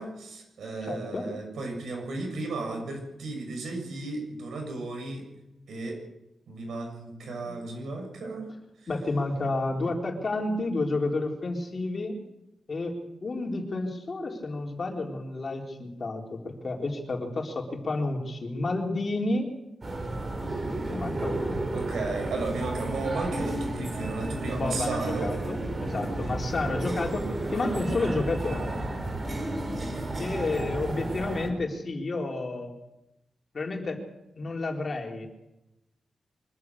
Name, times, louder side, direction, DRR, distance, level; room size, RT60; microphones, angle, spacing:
voice 1, 0.0-5.3 5.7-6.0 6.5-8.5 8.8-8.9 9.7-9.9 21.7-25.4, right 3 dB, 90° right, 3 dB, 7.0 m, -34 dB
voice 2, 0.8-1.2 7.2-7.6 8.9-12.2 12.7-12.9 13.2-19.5 20.9-21.6 24.5-27.2 27.5-28.7 30.2-32.7 33.5-34.0 34.4-35.3, left 2 dB, 40° left, 1 dB, 3.9 m, -30 dB
sound 1, 19.8-31.5, right 2 dB, 30° right, 4.0 m, -32 dB
24.0 x 14.0 x 8.6 m, 0.91 s
wide cardioid pair, 130°, 0 cm